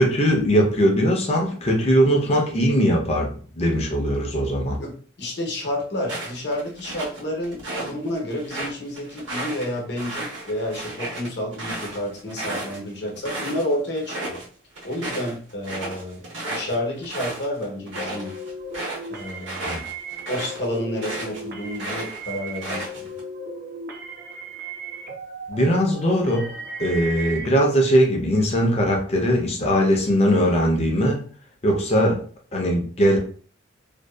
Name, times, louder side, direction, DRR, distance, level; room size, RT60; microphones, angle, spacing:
voice 1, 0.0-4.8 19.6-19.8 25.5-26.5 26.8-31.2 31.6-32.2 32.5-33.2, equal, 35° left, 0.5 m, -20 dB
voice 2, 4.8-14.4 14.8-16.2 16.5-18.3 19.1-19.8 20.3-23.1, left 1 dB, 60° left, 0.8 m, -30 dB
sound 1, 6.0-7.9 8.3-13.6 13.9-14.4 14.7-21.4 21.7-23.2, right 2 dB, 70° right, 0.9 m, -33 dB
sound 2, 17.9-27.5, right 1 dB, 55° right, 0.5 m, -36 dB
2.6 x 2.2 x 2.2 m
head